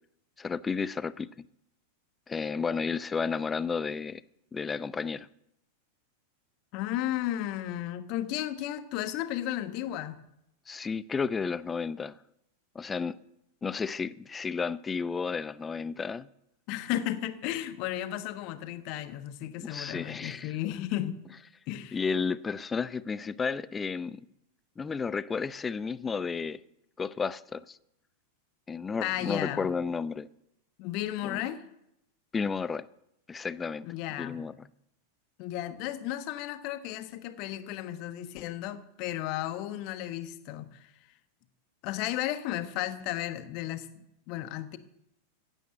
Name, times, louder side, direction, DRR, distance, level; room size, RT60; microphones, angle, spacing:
voice 1, 0.4-1.3 2.3-4.2 4.5-5.3 10.7-12.2 12.7-13.2 13.6-16.3 19.6-20.5 21.9-24.3 24.8-26.6 27.0-27.8 28.7-30.3 31.2-31.4 32.3-32.9 33.3-33.9 34.2-34.5, left 5 dB, 15° left, 0.5 m, -32 dB
voice 2, 6.7-10.2 16.7-21.2 21.7-22.0 29.0-29.7 30.8-31.6 33.8-34.4 35.4-40.9 41.8-44.8, left 13 dB, 45° left, 1.2 m, -34 dB
16.0 x 9.1 x 7.8 m
figure-of-eight pair, 90°, 0 cm